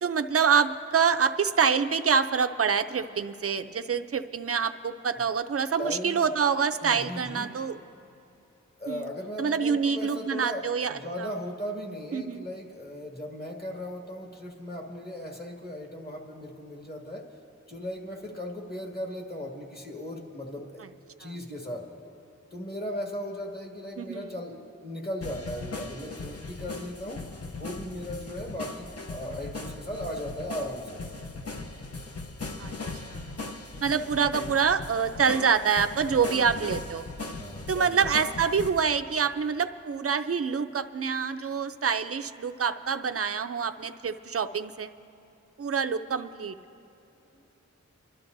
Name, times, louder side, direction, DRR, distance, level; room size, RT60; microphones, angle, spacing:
voice 1, 0.0-7.8 8.9-9.1 9.4-11.3 12.1-12.4 21.2-21.3 24.0-24.3 32.6-32.8 33.1-33.3 33.8-37.0 37.7-44.9 45.6-46.6, right 6 dB, 50° right, 9 dB, 0.5 m, -26 dB
voice 2, 5.8-6.3 6.8-7.5 8.8-10.6 10.9-17.2 17.7-20.8 21.2-21.8 22.5-27.2 27.6-31.0 36.1-36.5 37.4-38.1 47.3-47.4, equal, 35° left, 0 dB, 1.9 m, -37 dB
sound 1, 25.2-38.7, left 3 dB, 55° left, 0.8 m, -38 dB
29.5 x 12.0 x 2.6 m, 2.8 s
wide cardioid pair, 50°, 30 cm